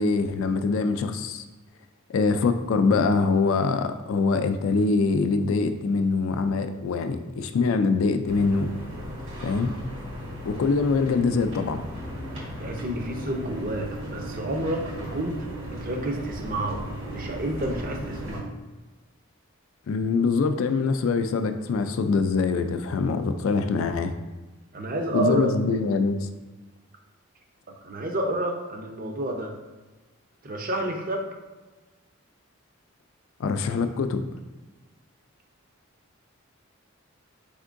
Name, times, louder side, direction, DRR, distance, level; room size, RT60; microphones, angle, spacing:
voice 1, 0.0-1.4 2.1-8.7 9.4-9.7 10.0-10.1 10.5-11.8 19.9-24.1 25.1-26.3 33.4-34.3, left 4 dB, 70° left, 8 dB, 0.3 m, -24 dB
sound 1, 8.2-18.4, equal, 70° right, 1.4 m, -36 dB
voice 2, 12.6-15.5 15.8-16.8 17.1-18.5 24.7-25.5 27.8-29.5 30.4-31.3, right 1 dB, 40° right, 2 dB, 0.5 m, -29 dB
4.4 x 3.5 x 2.5 m, 1.2 s
head